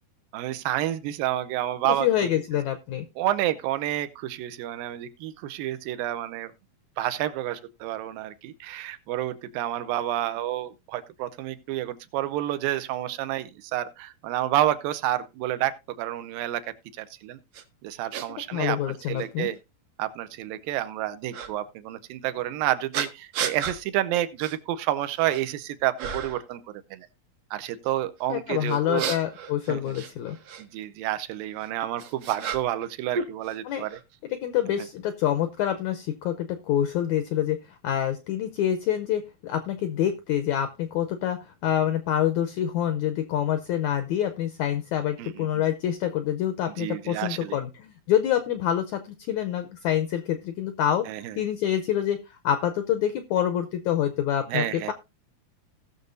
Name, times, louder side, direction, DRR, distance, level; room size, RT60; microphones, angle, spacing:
voice 1, 0.3-2.3 3.2-6.5 7.0-16.6 16.9-17.4 17.8-18.8 19.1-19.6 20.0-26.6 26.9-27.1 27.5-29.1 29.7-29.9 30.6-34.0 45.2-45.5 46.8-47.6 51.1-51.4 54.5-54.9, right 13 dB, 80° right, 2.4 m, -29 dB
voice 2, 1.8-3.0 18.5-19.5 28.3-30.4 33.6-33.8 34.3-37.6 37.8-51.0 51.4-52.2 52.4-54.9, left 10 dB, 80° left, 1.7 m, -26 dB
sound 1, 17.5-17.6 18.1-18.3 19.2-19.3 21.3-21.5 22.9-23.8 24.4-24.6 25.0-25.5 26.0-26.5 28.7-30.6 31.6-32.9 33.1-34.0, right 6 dB, 65° right, 1.6 m, -33 dB
17.5 x 6.7 x 2.6 m
omnidirectional pair, 4.2 m